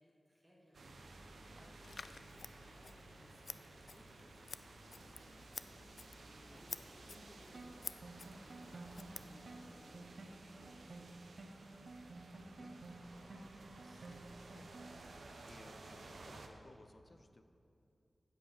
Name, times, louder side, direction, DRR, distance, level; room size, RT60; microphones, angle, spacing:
voice 1, 0.0-11.3, equal, ahead, -6 dB, 2.1 m, -65 dB
sound 1, 0.7-16.5, right 2 dB, 85° right, 0.9 m, -56 dB
voice 2, 1.5-2.2 6.5-6.9 12.3-15.1 15.4-17.4, left 2 dB, 40° left, 7 dB, 0.7 m, -62 dB
Scissors, 1.8-9.9, left 4 dB, 65° left, 0.3 m, -52 dB
sound 2, 7.5-15.2, right 2 dB, 60° right, 1.0 m, -53 dB
15.5 x 5.5 x 6.4 m, 2.6 s
wide cardioid pair, 85°, 0 cm